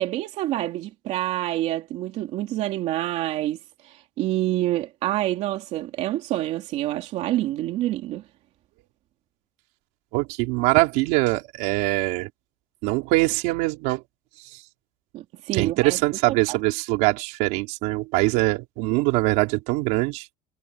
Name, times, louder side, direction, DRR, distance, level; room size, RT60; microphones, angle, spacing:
voice 1, 0.0-3.6 3.8-8.2 15.1-16.0 16.3-16.6, right 14 dB, 55° right, 2.8 m, -27 dB
voice 2, 10.1-12.3 12.8-14.0 15.5-20.3, right 22 dB, 90° right, 3.9 m, -23 dB
cardioid pair, 165°, 14 cm